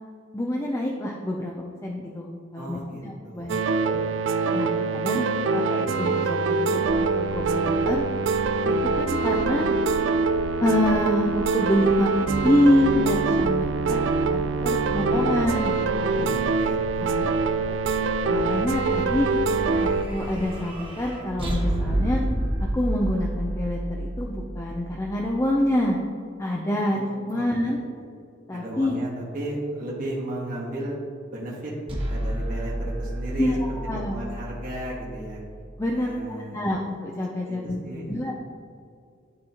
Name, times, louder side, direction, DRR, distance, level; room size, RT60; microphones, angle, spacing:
voice 1, 0.3-1.6 1.8-2.8 3.3-3.5 3.9-4.0 4.5-8.0 8.6-9.7 10.6-14.0 14.3-16.4 17.0-17.3 18.3-19.3 19.8-22.2 22.6-26.0 26.4-27.0 27.2-27.8 28.5-29.0 33.4-34.1 35.8-36.1 36.5-38.3, left 1 dB, 15° left, -2 dB, 0.4 m, -26 dB
voice 2, 2.5-4.0 5.0-5.3 16.1-18.1 26.9-27.1 27.3-27.4 27.7-28.0 28.5-30.9 31.3-31.7 32.0-33.8 34.1-35.4 35.9-36.7 37.4-38.3, right 1 dB, 45° right, -8 dB, 1.6 m, -35 dB
sound 1, 3.5-20.0, right 4 dB, 65° right, 0.3 m, -24 dB
sound 2, 10.5-20.5, equal, 80° right, 1.0 m, -39 dB
sound 3, 18.3-25.6 31.9-36.0, right 1 dB, 25° right, 1.2 m, -31 dB
11.5 x 4.0 x 2.9 m, 2.4 s
head